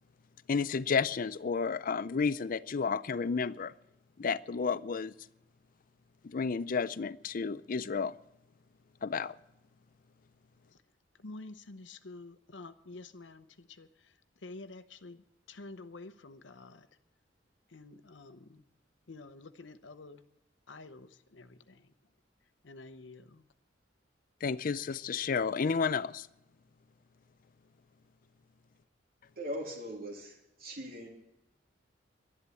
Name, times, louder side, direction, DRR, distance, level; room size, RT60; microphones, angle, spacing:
voice 1, 0.5-3.7 4.2-5.1 6.2-8.2 9.0-9.4 24.4-26.3, left 5 dB, 50° left, 16 dB, 0.5 m, -31 dB
voice 2, 11.1-16.9 17.7-18.6 19.1-20.2 20.7-21.9 22.6-23.5, left 2 dB, 75° left, 10 dB, 0.8 m, -49 dB
voice 3, 29.4-31.1, equal, 55° right, 1 dB, 2.9 m, -40 dB
12.0 x 11.5 x 8.3 m, 0.88 s
head